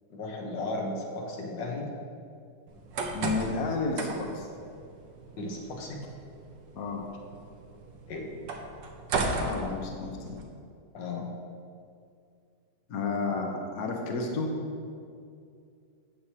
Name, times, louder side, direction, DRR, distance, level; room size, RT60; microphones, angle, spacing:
voice 1, 0.1-1.9 5.4-6.0 8.1-8.3 10.9-11.3, left 2 dB, 85° left, -1 dB, 1.9 m, -35 dB
sound 1, 2.7-10.4, right 3 dB, 80° right, 1.6 m, -36 dB
voice 2, 3.1-4.5 6.8-7.0 9.4-10.4 12.9-14.5, left 3 dB, 60° left, 1 dB, 1.4 m, -31 dB
16.5 x 6.3 x 2.9 m, 2.4 s
omnidirectional pair, 1.9 m